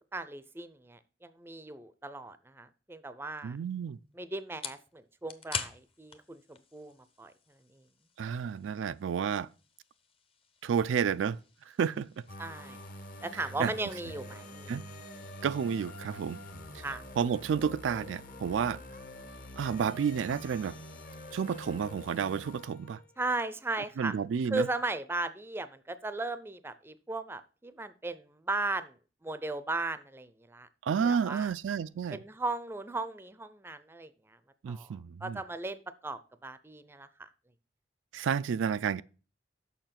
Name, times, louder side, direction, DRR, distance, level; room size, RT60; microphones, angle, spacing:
voice 1, 0.1-3.6 4.1-7.3 12.4-12.8 13.2-14.8 16.8-17.0 23.2-24.1 24.4-29.0 29.2-30.7 31.0-31.5 32.1-34.4 34.7-37.3, right 2 dB, 10° right, 0.5 m, -37 dB
sound 1, 3.4-16.6, left 5 dB, 30° left, 0.7 m, -48 dB
voice 2, 3.4-4.0 8.2-9.5 10.6-11.4 11.8-12.1 13.6-13.7 14.7-14.8 15.4-16.4 16.7-16.8 17.2-18.8 19.6-20.8 21.3-23.0 24.0-24.7 30.9-32.2 34.6-35.4 38.1-39.0, right 7 dB, 80° right, 0.3 m, -30 dB
sound 2, 12.3-23.1, left 1 dB, 50° left, 1.0 m, -46 dB
6.8 x 5.7 x 5.9 m
head